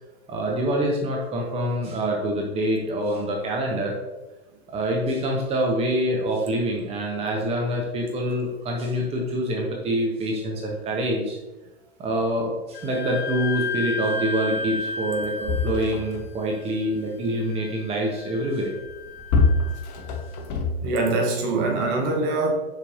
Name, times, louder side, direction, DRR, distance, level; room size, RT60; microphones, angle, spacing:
voice 1, 0.3-4.0 4.7-11.4 12.0-18.7, right 1 dB, 20° right, 1.0 m, -26 dB
Wind instrument woodwind instrument, 12.7-20.2, left 3 dB, 65° left, 1.0 m, -34 dB
sound 1, 14.8-14.9 15.1-16.5 18.8-21.2 21.9-22.0, left 3 dB, 40° left, 1.0 m, -25 dB
voice 2, 20.8-22.5, right 2 dB, 35° right, 1.2 m, -23 dB
6.8 x 5.5 x 2.7 m
figure-of-eight pair, 100°, 32 cm